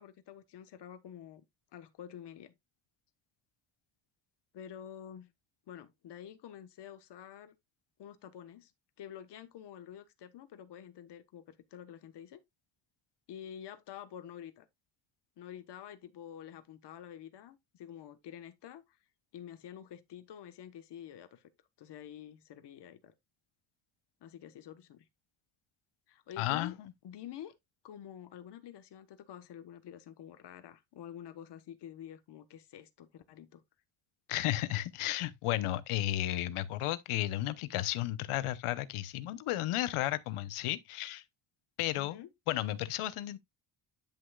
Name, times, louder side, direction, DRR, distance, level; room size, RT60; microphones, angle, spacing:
voice 1, 0.0-1.4 1.7-2.5 4.5-5.3 5.7-7.5 8.0-8.7 9.0-12.4 13.3-14.7 15.4-19.0 19.3-21.5 21.8-23.1 24.2-25.1 26.1-26.8 27.0-27.5 27.8-33.6 41.9-42.3, left 10 dB, 55° left, 1.3 m, -48 dB
voice 2, 26.4-26.7 34.3-41.2 41.8-43.4, left 14 dB, 85° left, 1.0 m, -33 dB
10.5 x 6.3 x 2.4 m
cardioid pair, 180°, 49 cm